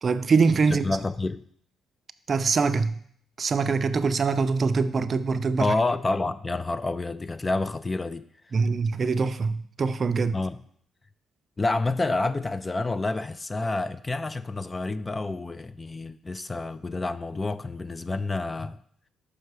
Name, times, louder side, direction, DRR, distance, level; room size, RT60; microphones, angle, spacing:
voice 1, 0.0-0.9 2.3-3.0 3.4-5.7 8.5-10.4, right 4 dB, 40° right, 0.5 m, -23 dB
voice 2, 0.7-1.4 5.6-8.3 10.3-10.6 11.6-18.8, left 2 dB, 25° left, 0.3 m, -28 dB
6.6 x 5.6 x 4.7 m
cardioid pair, 90°, 0 cm